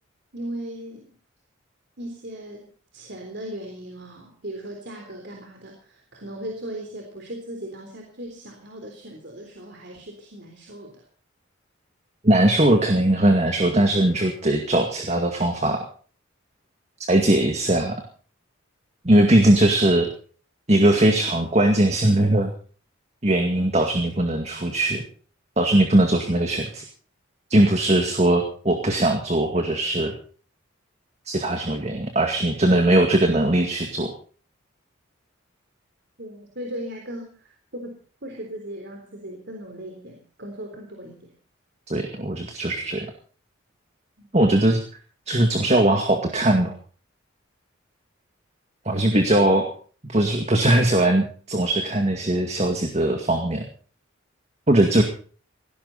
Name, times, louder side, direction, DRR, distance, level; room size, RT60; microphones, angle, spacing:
voice 1, 0.3-1.1 2.0-11.0 36.2-41.3 44.2-44.3, right 1 dB, 55° right, 2 dB, 3.7 m, -38 dB
voice 2, 12.2-15.9 17.1-18.0 19.0-20.1 20.7-22.5 23.2-25.0 25.6-26.8 27.5-30.1 31.3-34.1 41.9-43.1 44.3-44.8 45.3-46.7 48.9-49.7 50.1-53.6 54.7-55.0, right 1 dB, 30° right, 4 dB, 2.1 m, -20 dB
18.5 x 16.5 x 4.2 m, 0.42 s
head